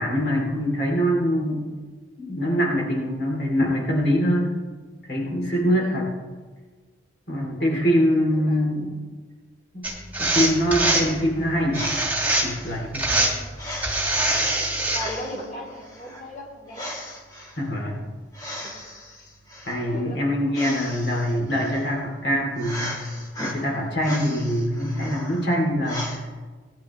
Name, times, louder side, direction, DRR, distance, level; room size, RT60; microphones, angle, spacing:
voice 1, 0.0-1.7 2.2-4.5 5.1-6.1 7.3-8.9 9.7-9.9 10.2-11.9 12.4-13.1 17.6-18.0 19.7-23.0 23.4-26.2, equal, 65° left, -2 dB, 2.7 m, -24 dB
voice 2, 7.6-8.7 13.1-13.4 14.6-16.9 18.6-18.7 19.8-20.1, left 1 dB, 40° left, -5 dB, 2.9 m, -38 dB
sound 1, 9.8-11.0 11.7-12.7 12.9-13.4 13.8-15.0, right 1 dB, 10° right, 2.0 m, -23 dB
sound 2, 11.5-26.2, left 1 dB, 20° left, 2.1 m, -38 dB
18.5 x 10.5 x 3.1 m, 1.4 s
head